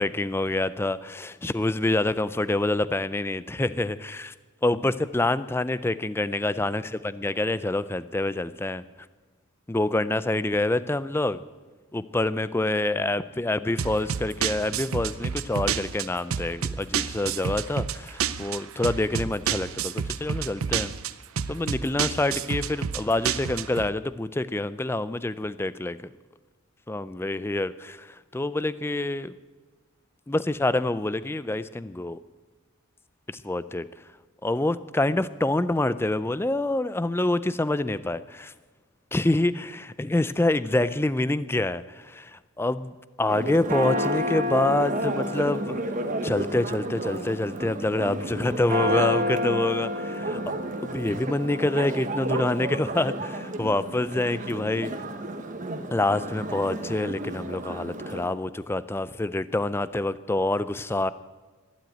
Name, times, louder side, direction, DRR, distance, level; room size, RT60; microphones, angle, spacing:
voice 1, 0.0-4.3 4.6-8.8 9.7-11.4 11.9-20.9 21.5-26.0 26.9-29.3 30.3-32.2 33.3-33.9 34.4-38.5 39.1-42.9 43.2-45.9 46.2-50.4 50.8-54.9 55.9-61.1, left 2 dB, 10° left, 15 dB, 0.4 m, -26 dB
sound 1, 13.8-23.9, right 7 dB, 85° right, 0.6 m, -30 dB
Church bell, 43.3-58.3, equal, 35° right, 1.1 m, -30 dB
12.5 x 12.0 x 9.1 m, 1.3 s
head